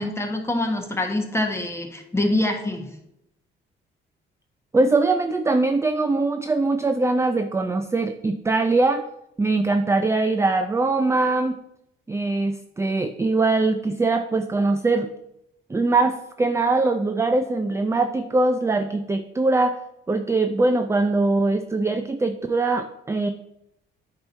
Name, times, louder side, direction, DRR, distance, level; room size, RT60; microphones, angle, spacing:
voice 1, 0.0-2.9, left 1 dB, 15° left, 3 dB, 1.3 m, -25 dB
voice 2, 4.7-9.0 9.4-11.6 12.1-15.1 15.7-19.8 20.1-23.3, right 3 dB, 15° right, 8 dB, 0.4 m, -22 dB
8.6 x 3.0 x 5.5 m, 0.82 s
cardioid pair, 90°, 20 cm